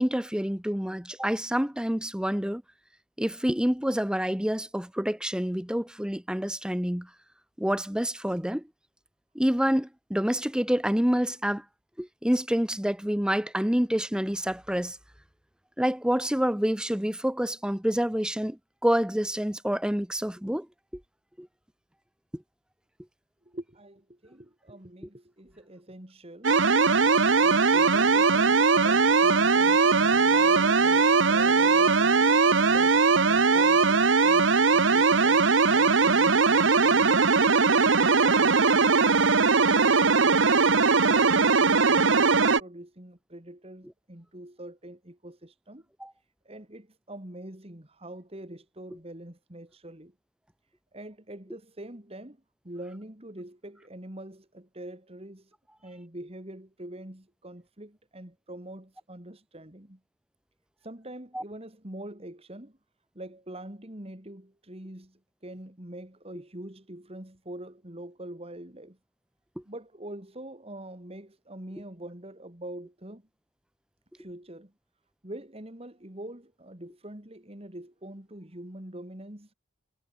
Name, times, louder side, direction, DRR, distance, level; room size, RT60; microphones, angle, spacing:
voice 1, 0.0-2.6 3.2-7.1 7.6-8.6 9.3-11.6 12.0-15.0 15.8-20.7 21.4-21.5 22.3-22.4 46.0-46.1 61.3-61.4, equal, 5° right, 1.0 m, -27 dB
voice 2, 23.4-26.5 27.4-37.4 37.9-39.2 39.9-45.9 46.4-50.1 50.9-52.4 52.6-55.5 55.8-60.0 60.8-62.8 63.1-69.0 69.6-73.2 74.2-74.7 75.2-79.5, right 1 dB, 30° right, 2.8 m, -44 dB
sound 1, 26.4-42.6, right 4 dB, 75° right, 1.2 m, -20 dB
head